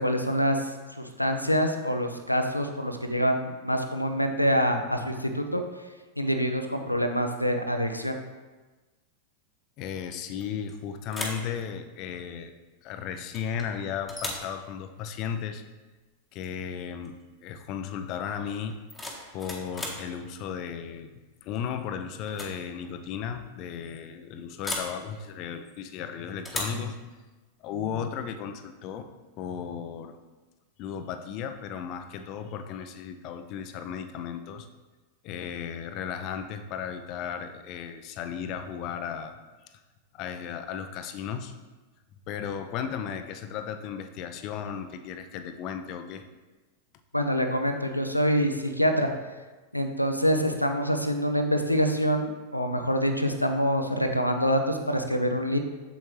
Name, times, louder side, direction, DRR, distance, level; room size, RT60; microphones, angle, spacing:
voice 1, 0.0-5.6 6.2-8.2 47.1-49.1 49.7-55.6, equal, 90° left, 6 dB, 0.6 m, -26 dB
voice 2, 9.8-12.5 12.8-15.6 16.3-18.8 19.3-21.1 21.4-27.0 27.6-29.1 29.4-30.2 30.8-34.7 35.2-39.4 40.1-41.5 42.3-46.2, left 7 dB, 40° left, 7 dB, 0.6 m, -35 dB
sound 1, 10.4-10.7 11.1-11.5 13.3-13.7 14.1-14.5 16.4-16.5 16.9-17.2 18.7-20.1 21.5-21.8 22.2-22.6 22.8-22.9 24.6-25.0 26.4-26.8, left 1 dB, 5° left, 1.4 m, -36 dB
7.6 x 7.1 x 3.2 m, 1.2 s
figure-of-eight pair, 90°, 0 cm